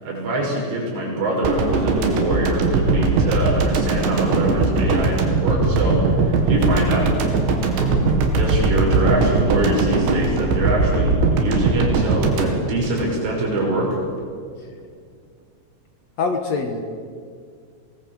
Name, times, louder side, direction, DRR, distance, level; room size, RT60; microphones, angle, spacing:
voice 1, 0.0-7.2 7.8-8.0 8.4-14.0, right 1 dB, 85° right, -2 dB, 8.6 m, -24 dB
sound 1, 1.4-13.6 13.9-14.1, right 3 dB, 70° right, 4.4 m, -20 dB
voice 2, 16.2-16.8, left 4 dB, 70° left, 4 dB, 1.6 m, -24 dB
24.0 x 18.5 x 7.7 m, 2.1 s
omnidirectional pair, 5.4 m